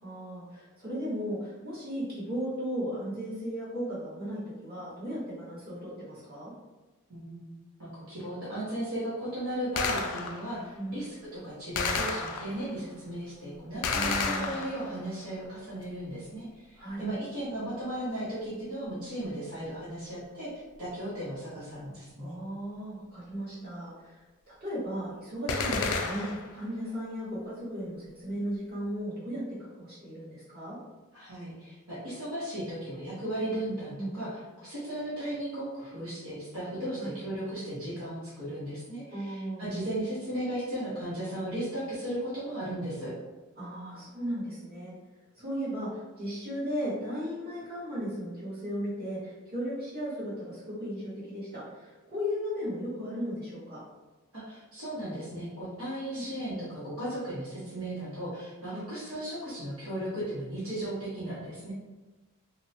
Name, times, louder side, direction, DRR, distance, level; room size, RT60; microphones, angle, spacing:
voice 1, 0.0-6.5 10.7-11.0 13.9-14.6 16.8-17.0 22.2-24.2 24.5-29.4 29.7-30.8 34.0-34.1 37.0-37.1 39.1-39.8 43.6-44.9 45.3-53.8 56.1-56.2 58.7-58.8, equal, 45° right, -10 dB, 1.3 m, -36 dB
voice 2, 7.1-7.5 7.8-22.4 31.1-34.3 34.6-43.1 54.3-61.7, right 1 dB, 70° right, -10 dB, 0.9 m, -36 dB
Gunshot gunfire, 9.8-10.6 11.8-12.7 13.8-15.1 25.5-26.6, left 4 dB, 75° left, 0.3 m, -31 dB
2.7 x 2.1 x 2.7 m, 1.2 s
head